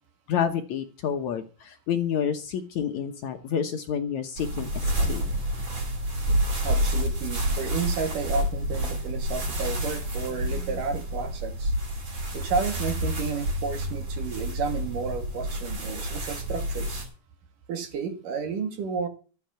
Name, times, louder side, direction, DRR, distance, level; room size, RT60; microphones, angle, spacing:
voice 1, 0.3-5.2, left 8 dB, 65° left, 7 dB, 2.1 m, -29 dB
sound 1, 4.4-17.0, equal, 50° right, 6.1 m, -29 dB
voice 2, 6.6-11.7 12.3-17.1 17.7-19.1, right 5 dB, 65° right, 7 dB, 3.4 m, -32 dB
14.0 x 8.5 x 6.9 m, 0.37 s
omnidirectional pair, 4.2 m